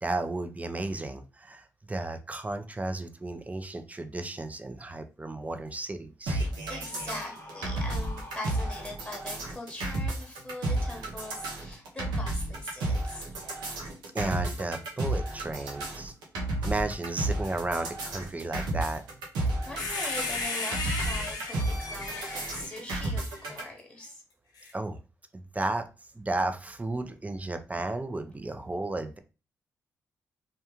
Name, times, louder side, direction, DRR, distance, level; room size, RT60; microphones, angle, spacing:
voice 1, 0.0-6.4 14.1-16.1 16.6-19.0 24.7-25.0 25.3-25.9 26.1-29.2, right 2 dB, 20° right, 8 dB, 0.5 m, -33 dB
sound 1, 6.3-23.6, right 2 dB, 85° right, 0.7 m, -32 dB
voice 2, 6.7-13.3 19.6-24.2, left 2 dB, 10° left, 0 dB, 1.1 m, -41 dB
Screaming, 6.8-9.5, left 2 dB, 35° left, 0.9 m, -45 dB
sound 2, 19.8-23.6 24.6-24.7, left 3 dB, 65° left, 0.6 m, -35 dB
2.3 x 2.1 x 2.9 m, 0.31 s
hypercardioid pair, 45°, 7 cm